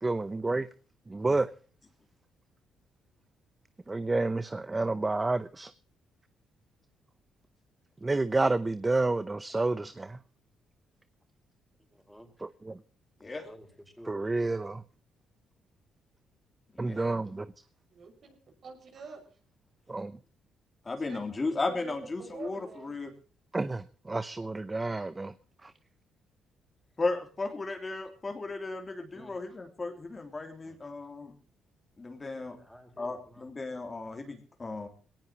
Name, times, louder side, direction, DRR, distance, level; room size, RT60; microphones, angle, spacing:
voice 1, 0.0-0.7 1.1-1.5 3.9-5.7 8.0-10.2 14.1-14.8 16.8-17.5 19.9-20.1 23.5-25.3, right 2 dB, 20° right, 0.7 m, -29 dB
voice 2, 11.9-12.5 13.4-14.1 27.7-27.8 29.1-29.4 30.6-30.9 32.5-33.5, equal, ahead, 4.6 m, -53 dB
voice 3, 17.9-18.4 18.6-19.3 21.1-22.9, right 4 dB, 55° right, 5.7 m, -46 dB
voice 4, 20.8-23.1 27.0-31.3 32.0-32.6 33.0-34.9, left 3 dB, 30° left, 3.2 m, -35 dB
21.0 x 18.0 x 2.9 m
cardioid pair, 90°, 0 cm